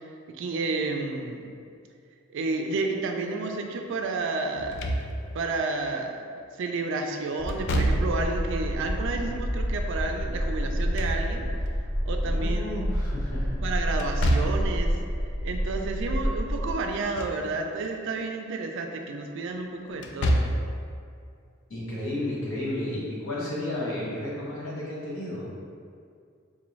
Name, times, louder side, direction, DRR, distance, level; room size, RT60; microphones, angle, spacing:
voice 1, 0.4-1.5 2.3-4.8 5.3-6.2 6.6-11.4 12.1-13.0 13.6-14.9 15.4-20.4, right 3 dB, 65° right, 3 dB, 0.4 m, -31 dB
Slam / Thump thud, 4.6-5.5 7.5-8.4 10.6-11.7 14.0-14.8 16.9-17.5 17.8-17.9 19.9-20.8, equal, 60° left, 0.3 m, -27 dB
sound 1, 7.4-16.7, equal, 5° right, 0.7 m, -29 dB
voice 2, 12.3-13.6 21.7-25.6, left 1 dB, 80° left, -6 dB, 1.0 m, -32 dB
3.8 x 2.5 x 3.1 m, 2.3 s
head